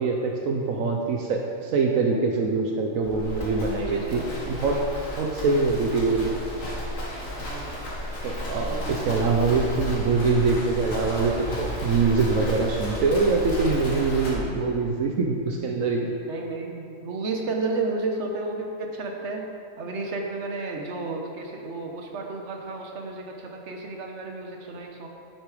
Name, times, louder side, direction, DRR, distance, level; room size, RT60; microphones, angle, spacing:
voice 1, 0.0-4.9 5.2-6.3 8.2-16.1, right 4 dB, 80° right, 2 dB, 1.2 m, -24 dB
Livestock farm animals working animals, 3.0-14.3, equal, 80° left, 2.2 m, -33 dB
voice 2, 3.9-4.5 5.1-5.4 7.5-7.7 8.6-9.3 16.2-19.5 19.8-25.1, right 3 dB, 60° right, 2 dB, 1.4 m, -32 dB
10.0 x 8.9 x 4.9 m, 2.5 s
omnidirectional pair, 1.4 m